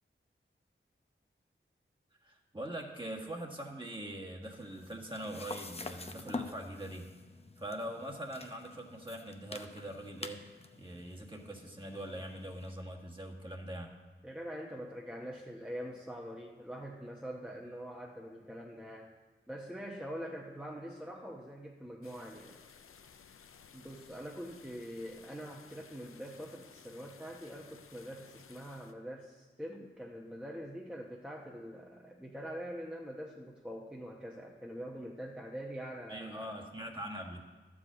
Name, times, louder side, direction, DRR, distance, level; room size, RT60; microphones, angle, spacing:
voice 1, 2.2-7.1 7.6-10.4 10.7-13.9 36.1-37.4, right 1 dB, 25° right, 0 dB, 1.6 m, -42 dB
sound 1, 4.4-12.7, left 3 dB, 30° left, 0.7 m, -47 dB
voice 2, 14.2-19.1 19.5-22.6 23.7-36.6, equal, 5° right, -2 dB, 1.0 m, -44 dB
sound 2, 22.0-28.9, left 6 dB, 85° left, 0.5 m, -57 dB
11.5 x 5.0 x 7.4 m, 1.3 s
cardioid pair, 45°, 21 cm